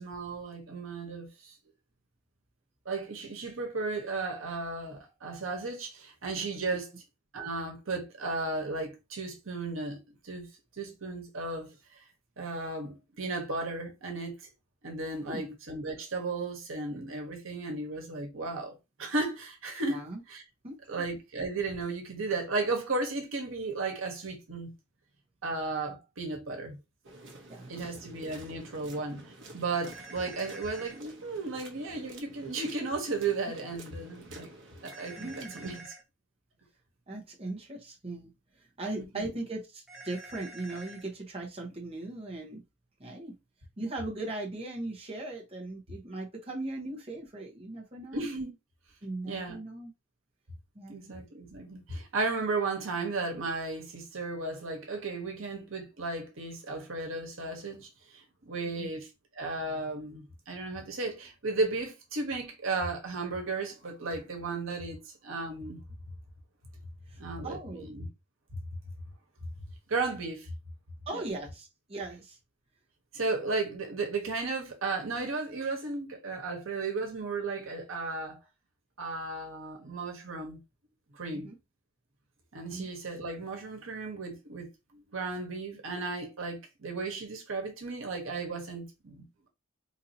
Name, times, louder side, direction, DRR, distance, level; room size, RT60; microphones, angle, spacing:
voice 1, 0.0-1.5 2.8-6.9 7.3-10.5 10.8-11.7 12.4-14.3 14.8-20.0 20.3-20.4 20.9-24.7 25.4-26.8 27.7-34.5 34.8-35.8 39.0-39.3 48.1-48.5 49.3-49.6 50.9-65.8 67.2-68.1 69.9-70.5 71.1-71.2 73.1-78.4 79.0-80.6 81.1-81.5 82.5-89.2, right 3 dB, 80° right, 1.2 m, -35 dB
voice 2, 15.2-15.5 19.9-20.2 20.6-21.0 27.5-28.0 35.2-35.5 37.1-42.6 43.0-43.4 43.8-48.3 49.0-49.9 50.7-51.1 58.8-58.9 67.1-67.8 71.1-72.4 81.4-81.6 82.7-82.9, right 2 dB, 30° right, 0.9 m, -39 dB
sound 1, 27.0-35.8, right 2 dB, 60° right, 0.9 m, -50 dB
sound 2, 29.8-31.0 34.9-36.0 39.9-41.0, right 3 dB, 5° right, 1.1 m, -47 dB
3.9 x 2.8 x 2.7 m
head